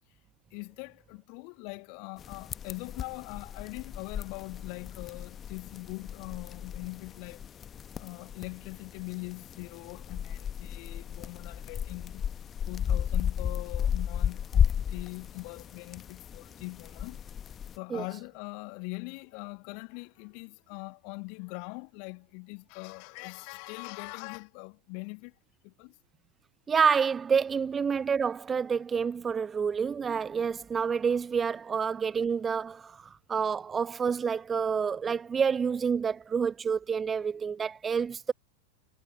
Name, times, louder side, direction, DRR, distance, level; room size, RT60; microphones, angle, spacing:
voice 1, 0.5-7.4 8.0-12.2 12.7-17.2 17.8-25.3 25.6-25.9, left 40 dB or more, 45° left, 1.9 m, -42 dB
sound 1, 2.2-17.8, left 8 dB, 25° left, 1.2 m, -34 dB
voice 2, 26.7-38.3, right 6 dB, 20° right, 0.4 m, -28 dB
figure-of-eight pair, 90°, 0 cm